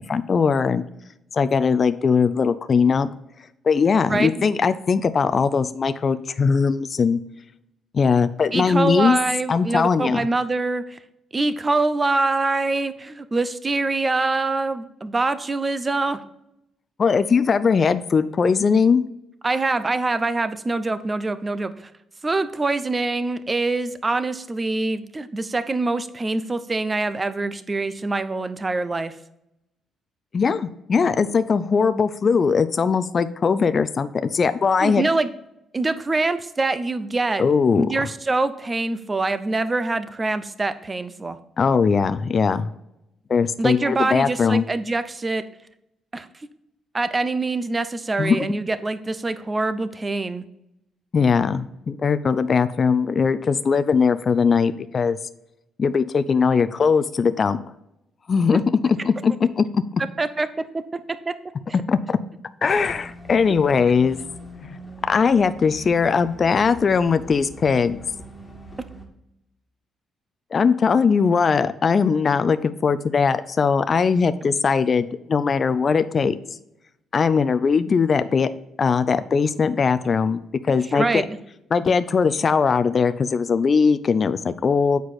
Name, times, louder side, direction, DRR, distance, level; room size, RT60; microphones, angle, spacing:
voice 1, 0.1-0.8 1.3-3.1 3.6-7.2 7.9-9.2 9.5-10.3 17.0-19.0 30.3-35.0 37.4-37.9 41.6-42.7 43.3-44.6 48.2-48.4 51.1-55.2 55.8-57.6 58.3-59.8 61.9-62.2 62.6-64.2 65.1-68.0 70.5-76.3 77.1-78.5 78.8-80.4 80.6-81.2 81.7-85.0, left 5 dB, 40° left, 12 dB, 0.4 m, -20 dB
voice 2, 4.1-4.4 8.5-11.0 11.3-16.2 19.4-21.9 22.2-29.1 34.8-35.3 35.7-37.5 37.8-41.4 43.6-45.4 46.1-46.3 46.9-50.5 60.2-61.4 61.7-61.8 80.9-81.3, right 3 dB, 25° right, 13 dB, 0.6 m, -24 dB
sound 1, 62.7-69.1, right 1 dB, 20° left, 1.8 m, -42 dB
8.0 x 4.8 x 4.2 m, 0.84 s
cardioid pair, 90°, 0 cm